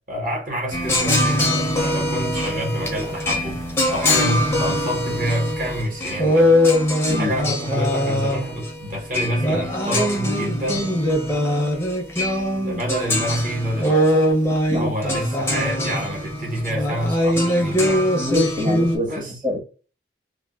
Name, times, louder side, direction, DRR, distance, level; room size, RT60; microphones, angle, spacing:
voice 1, 0.1-6.5 7.1-10.9 12.5-14.2 14.6-18.1 19.1-19.4, equal, 45° right, 1.2 m, -27 dB
sound 1, 0.7-19.0, left 1 dB, 15° left, 0.6 m, -22 dB
voice 2, 18.2-19.1 19.4-19.6, left 2 dB, 25° right, 1.0 m, -24 dB
3.4 x 2.3 x 2.2 m
head